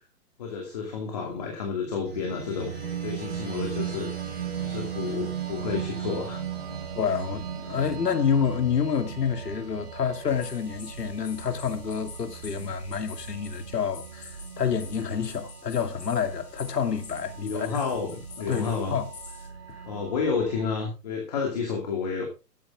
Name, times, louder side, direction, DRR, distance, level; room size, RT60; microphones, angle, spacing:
voice 1, 0.4-4.1 4.6-6.4 17.4-19.0 19.9-22.3, left 5 dB, 25° left, 2.5 m, -30 dB
sound 1, 2.0-20.7, right 8 dB, 40° right, 5.4 m, -37 dB
voice 2, 6.9-17.8 18.4-19.1 19.7-19.8, left 7 dB, 85° left, 2.6 m, -28 dB
sound 2, 10.3-19.5, left 6 dB, 50° left, 3.3 m, -48 dB
14.5 x 10.5 x 3.6 m
hypercardioid pair, 180°, 47 cm